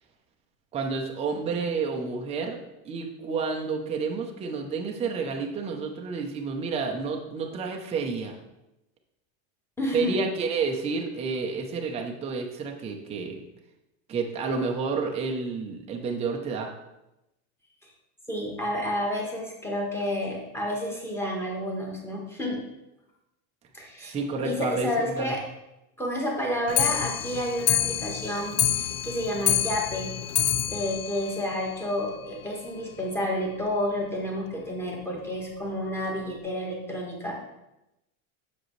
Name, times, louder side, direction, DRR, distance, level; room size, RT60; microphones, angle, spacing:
voice 1, 0.7-2.6 2.8-8.4 9.9-13.4 14.1-16.7 24.0-25.3, right 4 dB, 15° right, 1 dB, 0.6 m, -30 dB
voice 2, 9.8-10.2 17.8-17.9 18.3-22.6 23.7-24.1 24.4-25.4 26.0-30.1 30.7-37.5, left 1 dB, 5° left, -2 dB, 1.3 m, -30 dB
Clock, 26.7-32.2 32.5-32.6 32.9-33.0 33.3-33.4 33.7-33.8 34.5-34.6 35.3-35.4 36.0-36.1, left 12 dB, 35° left, 0.4 m, -28 dB
7.7 x 6.2 x 3.1 m, 0.92 s
supercardioid pair, 150°, 43 cm